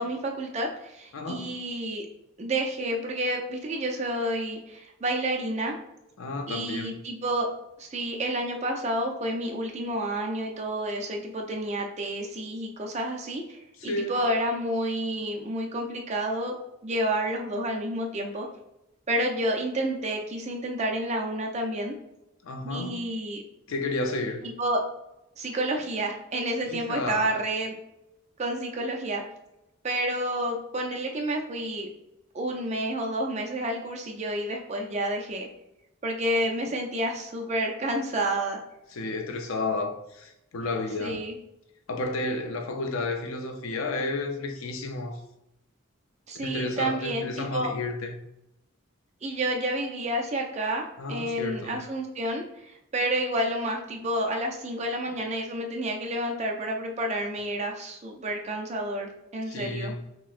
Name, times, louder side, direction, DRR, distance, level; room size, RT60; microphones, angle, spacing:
voice 1, 0.0-2.1 2.4-5.8 6.5-7.5 7.8-16.6 16.8-18.5 19.1-21.9 22.6-23.4 24.4-24.8 25.4-27.7 28.4-29.2 29.8-31.9 32.3-35.5 36.0-38.6 41.0-41.4 46.3-47.7 49.2-59.9, right 1 dB, 30° right, 0.4 m, -30 dB
voice 2, 1.1-1.5 6.2-7.0 13.8-14.2 22.4-23.0 23.7-24.5 26.7-27.4 38.9-41.2 41.9-45.2 46.3-48.2 51.0-51.8 59.5-60.0, left 2 dB, 75° left, 0.5 m, -32 dB
6.0 x 2.0 x 2.4 m
head